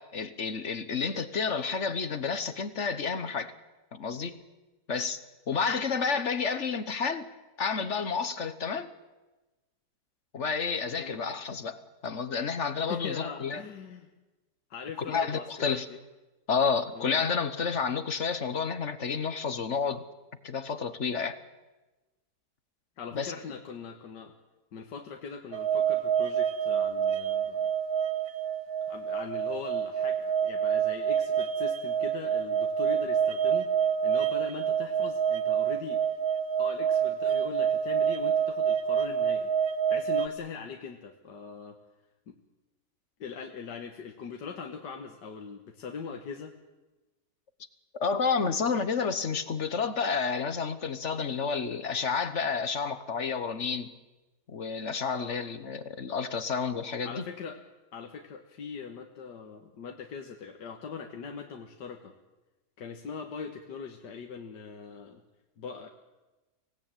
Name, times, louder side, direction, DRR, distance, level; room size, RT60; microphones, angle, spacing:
voice 1, 0.0-3.5 3.9-4.4 4.9-5.2 5.5-7.3 7.6-8.9 10.3-13.6 15.1-15.9 16.5-20.0 20.4-21.4 23.1-23.3 47.9-53.9 54.5-57.2, left 5 dB, 45° left, 1.3 m, -30 dB
voice 2, 12.9-14.1 14.7-16.0 17.0-17.2 23.0-24.3 24.7-27.7 28.9-36.0 36.6-39.5 39.9-41.8 42.3-42.4 43.2-46.5 55.1-55.4 57.0-57.6 57.9-62.1 62.8-65.2 65.6-65.9, left 5 dB, 80° left, 2.0 m, -41 dB
sound 1, 25.5-40.3, right 8 dB, 65° right, 1.4 m, -27 dB
24.5 x 18.0 x 9.0 m
omnidirectional pair, 1.8 m